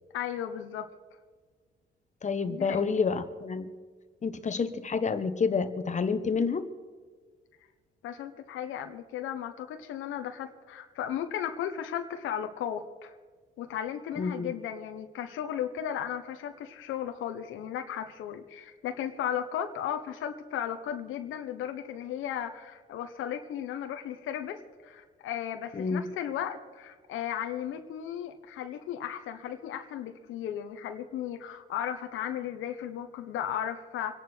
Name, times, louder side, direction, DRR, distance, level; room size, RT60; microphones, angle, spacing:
voice 1, 0.1-0.9 2.5-3.0 8.0-13.1 13.6-34.1, left 9 dB, 85° left, 6 dB, 1.2 m, -35 dB
voice 2, 2.2-3.7 4.2-6.7 14.2-14.5 25.7-26.1, left 5 dB, 35° left, 10 dB, 1.3 m, -29 dB
25.5 x 10.5 x 4.6 m, 1.5 s
cardioid pair, 90°, 20 cm